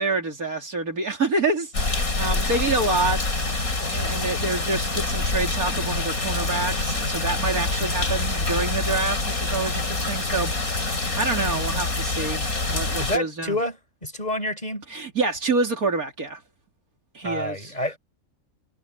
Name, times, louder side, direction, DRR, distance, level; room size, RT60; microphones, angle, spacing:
voice 1, 0.0-3.2 3.9-13.6 14.9-16.4 17.1-17.7, right 3 dB, 80° right, 3.7 m, -27 dB
sound 1, 1.7-13.2, left 3 dB, 75° left, 4.4 m, -26 dB
voice 2, 13.0-14.9 17.2-18.0, left 1 dB, 25° left, 6.7 m, -28 dB
omnidirectional pair, 1.5 m